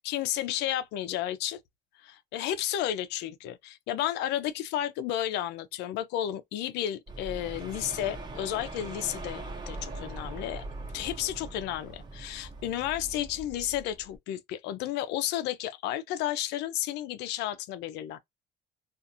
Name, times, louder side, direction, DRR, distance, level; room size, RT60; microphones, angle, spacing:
voice 1, 0.0-1.6 2.0-10.6 10.9-18.2, left 12 dB, 85° left, 0.5 m, -32 dB
sound 1, 7.1-14.2, right 2 dB, 25° right, 0.8 m, -41 dB
2.5 x 2.5 x 2.6 m
cardioid pair, 110°, 17 cm